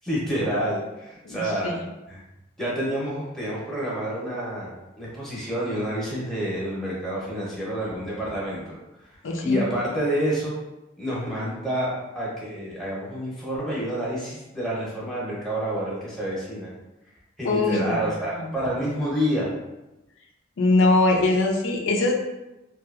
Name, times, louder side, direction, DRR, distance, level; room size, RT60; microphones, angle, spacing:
voice 1, 0.0-1.8 2.1-2.2 2.6-8.8 9.4-10.5 11.0-16.7 17.4-19.5, equal, ahead, -7 dB, 0.7 m, -28 dB
voice 2, 1.3-1.8 9.2-9.6 17.4-17.8 20.6-22.1, left 2 dB, 90° left, 0 dB, 0.5 m, -21 dB
2.7 x 2.3 x 2.4 m, 0.97 s
head